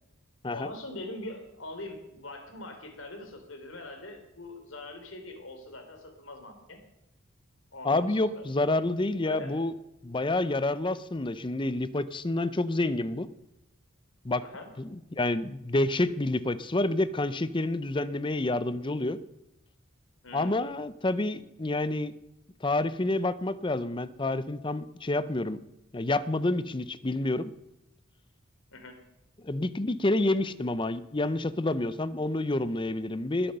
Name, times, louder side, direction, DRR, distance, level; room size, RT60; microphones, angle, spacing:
voice 1, 0.5-6.8 7.7-8.5 9.2-9.6 14.4-14.7 20.2-20.6 28.7-29.0, left 2 dB, 75° left, 5 dB, 3.3 m, -42 dB
voice 2, 7.8-9.7 10.0-13.3 14.2-14.4 14.8-19.2 20.3-22.1 22.6-25.6 25.9-27.5 29.4-33.5, left 2 dB, 25° left, 15 dB, 0.6 m, -28 dB
20.5 x 8.6 x 6.7 m, 0.89 s
head